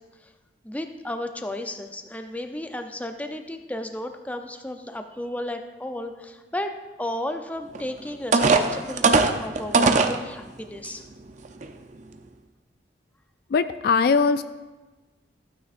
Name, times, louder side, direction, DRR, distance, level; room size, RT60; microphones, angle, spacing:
voice 1, 0.6-6.7 7.0-11.0, left 1 dB, 10° left, 6 dB, 0.5 m, -33 dB
sound 1, 7.7-7.8 8.3-10.2 10.8-10.9 11.5-11.7, right 3 dB, 45° right, 0.6 m, -19 dB
voice 2, 13.5-14.4, left 5 dB, 60° left, 12 dB, 0.3 m, -20 dB
15.0 x 9.3 x 2.5 m, 1.2 s
head